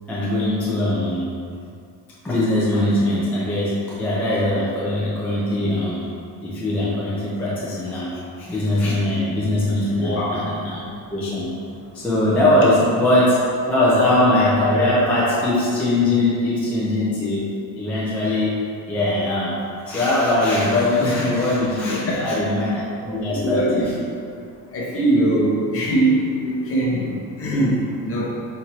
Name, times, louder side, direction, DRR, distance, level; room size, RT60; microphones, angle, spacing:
voice 1, 0.1-1.3 2.2-6.1 6.4-8.1 8.4-11.5 11.9-13.4 13.7-17.5 17.7-19.6 19.8-23.9, left 1 dB, 5° left, -9 dB, 0.4 m, -21 dB
voice 2, 10.0-10.3 22.1-22.2 23.3-23.9 24.7-28.5, right 1 dB, 30° left, -5 dB, 0.7 m, -21 dB
4.5 x 2.6 x 4.1 m, 2.4 s
cardioid pair, 175°, 42 cm